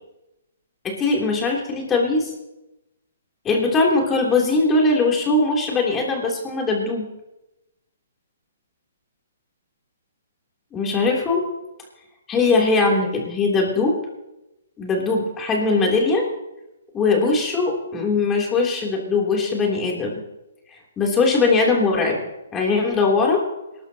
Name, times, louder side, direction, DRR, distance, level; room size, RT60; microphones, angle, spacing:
voice 1, 0.8-2.3 3.4-7.1 10.7-11.4 12.3-14.0 14.8-16.2 16.9-20.2 21.0-22.2 22.5-23.4, left 3 dB, 15° left, -1 dB, 3.3 m, -20 dB
22.5 x 12.5 x 3.0 m, 0.92 s
hypercardioid pair, 140°, 0 cm